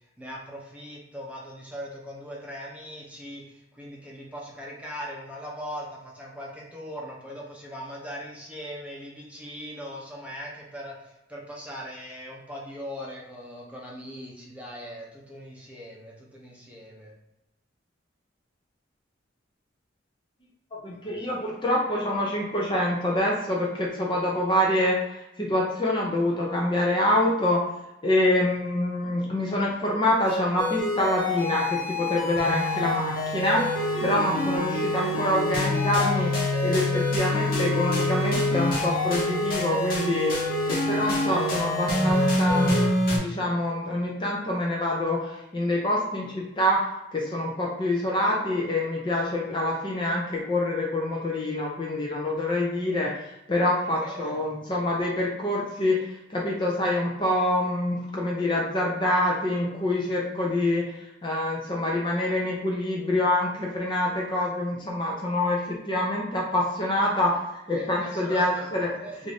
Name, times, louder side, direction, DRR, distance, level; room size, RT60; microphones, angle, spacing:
voice 1, 0.2-17.1 21.1-21.4 53.9-54.7 67.7-68.7 69.0-69.3, equal, 5° right, -4 dB, 0.7 m, -40 dB
voice 2, 20.8-27.6 28.0-36.3 36.6-40.4 40.7-42.8 43.1-46.8 47.1-53.1 53.5-65.6 65.9-68.9 69.2-69.3, left 1 dB, 25° left, -3 dB, 0.6 m, -26 dB
sound 1, 30.2-43.2, left 1 dB, 50° left, 1.0 m, -26 dB
3.6 x 2.6 x 3.3 m, 0.90 s
head